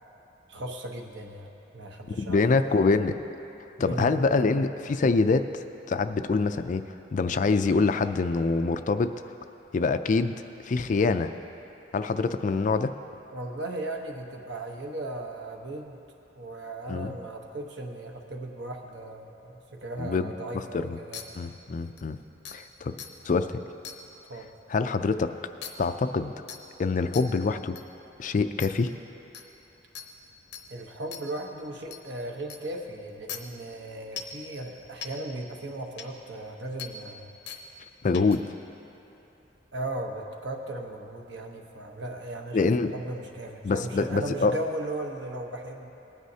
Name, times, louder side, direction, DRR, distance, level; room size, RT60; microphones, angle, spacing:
voice 1, 0.5-3.0 3.8-4.4 13.3-16.0 16.3-21.3 24.3-24.5 30.7-37.3 39.7-45.9, right 1 dB, 75° right, 2 dB, 1.0 m, -37 dB
voice 2, 2.2-3.1 3.8-6.8 7.1-9.1 9.7-11.3 11.9-12.9 16.9-17.1 20.0-21.0 21.4-22.2 22.5-22.9 23.3-23.6 24.7-25.3 25.8-26.3 26.8-27.8 28.2-28.9 38.0-38.4 42.5-42.9 43.6-44.5, left 4 dB, 45° left, 10 dB, 0.4 m, -25 dB
sound 1, 21.1-21.2 22.0-22.1 22.5-22.6 23.0-23.1 23.8-24.0 25.6-25.7 26.5-26.6 27.1-27.2 27.8-27.9 28.6-28.7 29.3-29.4 30.0-30.1 30.5-30.6 31.1-31.2 31.9-32.0 32.5-32.6 33.3-33.4 34.2-34.4 35.0-35.1 36.0-36.1 36.8-36.9 37.5-37.6 38.1-38.4, left 8 dB, 70° left, 0.8 m, -38 dB
19.0 x 9.5 x 2.8 m, 3.0 s
head